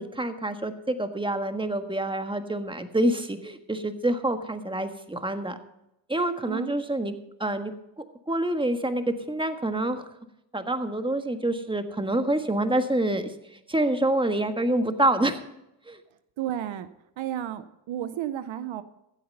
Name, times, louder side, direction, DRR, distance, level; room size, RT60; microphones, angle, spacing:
voice 1, 0.0-5.6 6.1-7.1 7.4-7.7 8.0-10.0 10.5-13.3 13.7-15.4 15.9-16.0, right 1 dB, 10° right, 8 dB, 1.5 m, -27 dB
voice 2, 16.4-16.9 17.2-18.8, right 11 dB, 75° right, 13 dB, 0.8 m, -32 dB
15.0 x 8.2 x 5.4 m, 0.85 s
supercardioid pair, 55°, 47 cm